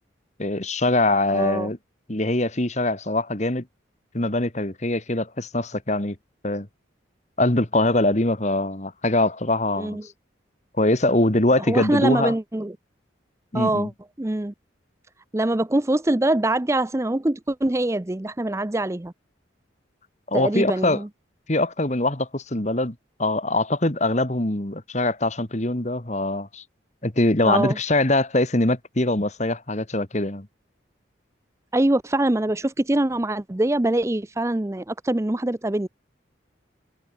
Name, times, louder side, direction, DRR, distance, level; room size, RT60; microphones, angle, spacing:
voice 1, 0.4-1.8 2.1-3.6 4.1-6.1 6.4-6.7 7.4-10.0 10.8-12.3 13.5-13.9 20.3-21.0 21.5-26.6 27.0-30.5, left 2 dB, 35° left, 1.8 m, -23 dB
voice 2, 1.3-1.7 9.7-10.0 11.7-12.7 13.5-13.9 14.2-14.5 15.3-19.1 20.3-21.1 27.4-27.8 31.7-35.9, right 1 dB, 15° right, 0.5 m, -23 dB
head